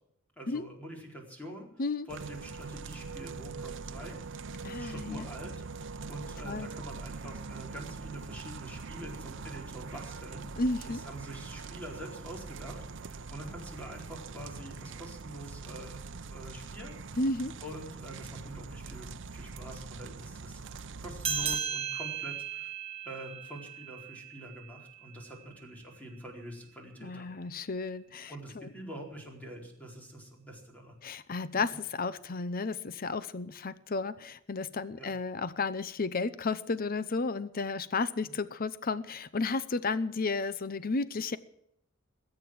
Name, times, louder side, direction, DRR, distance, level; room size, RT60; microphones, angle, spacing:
voice 1, 0.4-1.7 2.1-4.2 4.7-5.5 6.1-10.5 10.9-16.0 16.3-17.0 17.6-20.6 21.0-22.7 23.0-27.3 28.3-31.0 35.0-35.1 38.2-38.3, right 1 dB, 5° left, 0 dB, 4.4 m, -45 dB
sound 1, 2.1-21.6, right 4 dB, 60° right, 0.8 m, -43 dB
voice 2, 4.6-5.2 6.5-6.7 10.6-11.0 17.2-17.5 27.0-28.7 31.0-31.7 32.0-41.4, left 3 dB, 45° left, 15 dB, 0.7 m, -33 dB
sound 2, 21.2-26.1, right 8 dB, 25° right, 2.0 m, -37 dB
21.0 x 9.1 x 7.5 m, 0.75 s
head